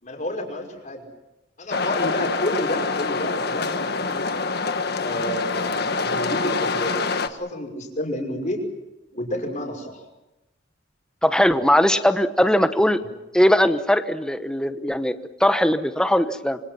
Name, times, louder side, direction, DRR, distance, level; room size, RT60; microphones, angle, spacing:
voice 1, 0.0-1.0 1.6-3.8 4.1-4.4 5.0-8.6 9.1-10.0, left 1 dB, 45° left, 2 dB, 5.6 m, -30 dB
sound 1, 1.7-7.3, left 4 dB, 60° left, 1.5 m, -25 dB
voice 2, 11.2-13.0 13.3-16.6, equal, 5° left, 9 dB, 1.1 m, -20 dB
27.0 x 25.5 x 5.9 m, 0.97 s
head